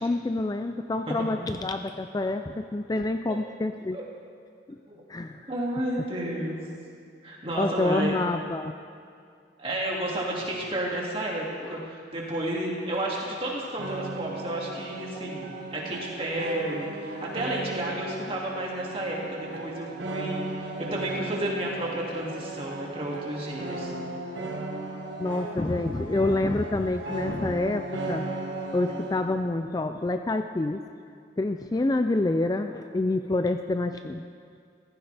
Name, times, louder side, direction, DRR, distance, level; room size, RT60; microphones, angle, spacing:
voice 1, 0.0-4.0 4.7-4.8 5.1-5.5 7.6-8.7 11.6-11.8 15.2-15.3 25.2-28.3 28.7-30.9 31.4-34.2, left 2 dB, 20° left, 7 dB, 0.3 m, -27 dB
voice 2, 5.5-6.6 7.2-8.1 9.6-23.9, right 1 dB, 30° right, -4 dB, 2.4 m, -31 dB
sound 1, 13.8-29.2, right 2 dB, 80° right, 1.8 m, -36 dB
15.0 x 15.0 x 3.4 m, 2.3 s
head